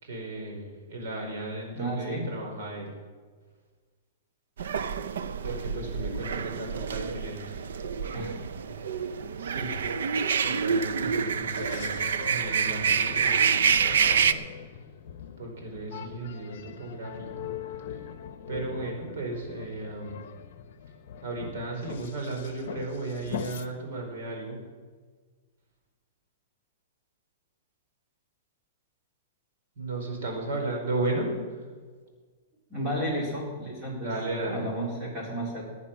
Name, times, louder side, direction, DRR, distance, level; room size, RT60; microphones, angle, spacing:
voice 1, 0.0-2.9 5.4-7.4 9.4-9.8 10.4-14.4 15.4-17.3 18.5-20.2 21.2-24.6 29.8-31.3 34.0-34.7, right 2 dB, 65° right, 0 dB, 4.7 m, -35 dB
voice 2, 1.7-2.3 8.1-8.3 32.7-34.1 34.4-35.6, right 1 dB, 15° right, -3 dB, 3.9 m, -32 dB
sound 1, 4.6-14.3, right 6 dB, 85° right, 0.6 m, -27 dB
sound 2, 11.5-23.7, left 9 dB, 50° left, 1.1 m, -42 dB
16.0 x 9.7 x 5.9 m, 1.5 s
hypercardioid pair, 165°, 0 cm